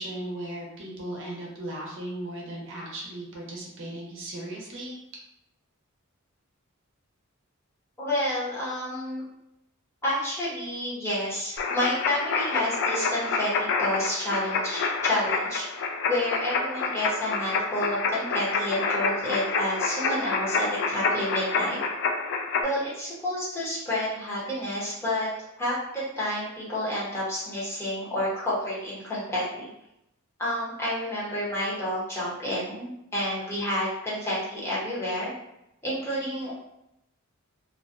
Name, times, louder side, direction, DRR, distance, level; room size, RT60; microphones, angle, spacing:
voice 1, 0.0-5.0, right 1 dB, 60° right, -3 dB, 0.6 m, -37 dB
voice 2, 8.0-9.2 10.0-15.7 16.1-21.8 22.6-25.3 25.6-29.7 30.4-35.3 35.8-36.5, left 1 dB, 10° left, -8 dB, 0.7 m, -29 dB
sound 1, 11.6-22.6, left 4 dB, 55° left, 0.3 m, -28 dB
2.4 x 2.1 x 2.4 m, 0.83 s
head